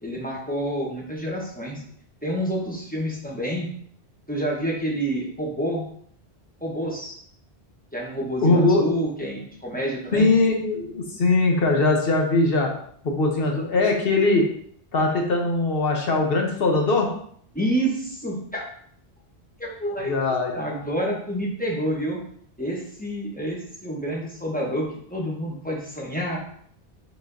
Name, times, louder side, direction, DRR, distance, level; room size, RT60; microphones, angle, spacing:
voice 1, 0.0-1.8 2.2-3.7 4.3-5.8 6.6-7.2 7.9-10.3 17.5-18.6 19.6-20.1 20.5-22.2 22.6-26.4, right 1 dB, 10° left, -3 dB, 0.9 m, -28 dB
voice 2, 8.4-8.8 10.1-12.7 13.0-14.5 14.9-17.1 20.1-20.5, left 3 dB, 65° left, 2 dB, 1.0 m, -21 dB
4.9 x 3.8 x 2.6 m, 0.63 s
omnidirectional pair, 1.1 m